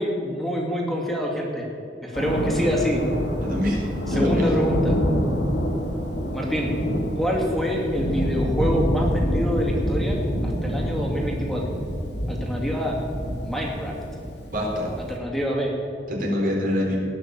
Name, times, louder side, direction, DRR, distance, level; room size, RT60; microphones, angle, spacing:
voice 1, 0.0-1.7 2.0-3.0 4.1-4.9 6.3-6.7 7.1-11.7 12.3-13.0 13.4-14.0 15.1-15.8, equal, ahead, -1 dB, 2.5 m, -26 dB
Thunder, 2.1-15.2, equal, 90° left, 3.0 m, -27 dB
voice 2, 3.4-4.5 14.5-14.9 16.1-17.0, equal, 55° right, -2 dB, 4.2 m, -24 dB
19.0 x 6.4 x 8.7 m, 2.6 s
head